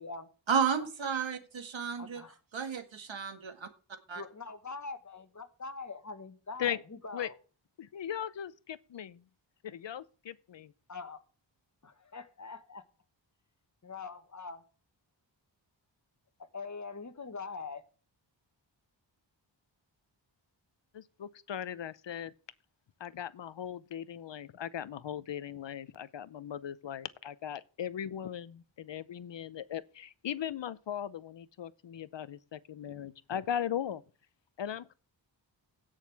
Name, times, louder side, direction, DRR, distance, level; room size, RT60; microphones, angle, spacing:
voice 1, 0.5-2.2 2.5-3.7 4.1-4.2, right 6 dB, 75° right, 1.8 m, -32 dB
voice 2, 2.0-2.3 4.1-7.4 10.9-11.2 11.8-12.8 13.8-14.6 16.4-17.8, left 4 dB, 40° left, 1.5 m, -43 dB
voice 3, 7.8-9.2 9.6-10.7 20.9-22.3 23.0-34.0 34.6-34.9, left 9 dB, 70° left, 0.7 m, -38 dB
16.5 x 6.6 x 3.4 m
wide cardioid pair, 80°, 46 cm